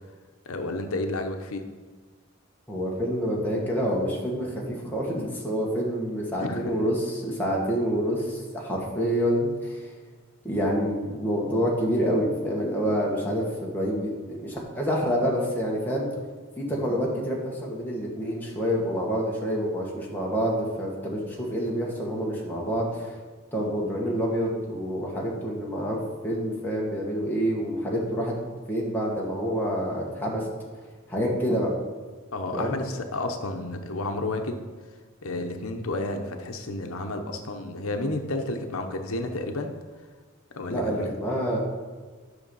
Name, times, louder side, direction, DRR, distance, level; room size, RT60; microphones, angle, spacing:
voice 1, 0.5-1.6 6.4-6.7 16.7-16.9 32.3-34.6 35.2-39.7 40.5-41.1, left 2 dB, 80° left, 5 dB, 0.8 m, -31 dB
voice 2, 2.7-9.9 10.4-16.1 16.6-23.2 23.5-28.4 28.7-30.5 31.1-31.7 32.5-32.8 40.7-41.6, equal, 10° left, -4 dB, 1.7 m, -27 dB
10.0 x 6.0 x 5.5 m, 1.4 s
head